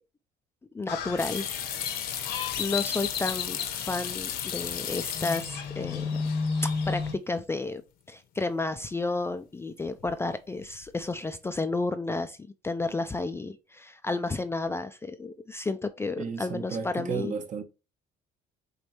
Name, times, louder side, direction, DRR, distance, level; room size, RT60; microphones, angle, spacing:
voice 1, 0.7-1.6 2.2-6.2 6.6-7.8 8.1-12.4 12.6-17.3, left 3 dB, 15° left, 0.3 m, -32 dB
Crow, 0.9-7.1, left 5 dB, 80° left, 1.1 m, -33 dB
sound 1, 1.2-5.8 6.1-6.7 7.1-7.2 9.9-10.3 10.6-11.1, left 9 dB, 60° left, 0.8 m, -35 dB
voice 2, 16.2-17.6, right 6 dB, 50° right, 0.9 m, -33 dB
5.2 x 3.1 x 2.9 m
cardioid pair, 110°, 17 cm